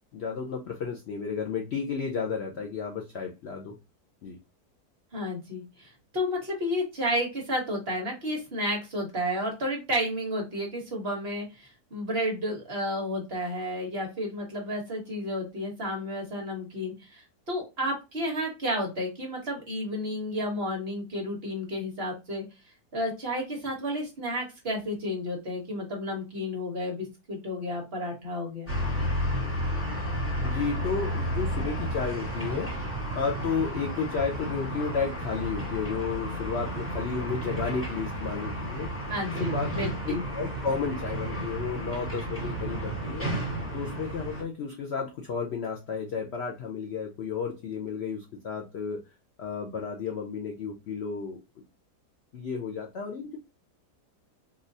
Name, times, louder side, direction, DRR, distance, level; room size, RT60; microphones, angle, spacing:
voice 1, 0.1-3.7 4.2-4.4 30.4-32.9 33.1-38.9 39.4-43.3 43.7-49.0 49.4-51.4 52.3-53.4, left 5 dB, 75° left, 1 dB, 0.6 m, -32 dB
voice 2, 5.1-22.4 22.9-28.7 39.1-40.2, equal, 45° right, 1 dB, 1.1 m, -32 dB
sound 1, 28.7-44.4, right 1 dB, 10° left, 1.0 m, -32 dB
3.8 x 2.4 x 2.6 m, 0.26 s
omnidirectional pair, 1.7 m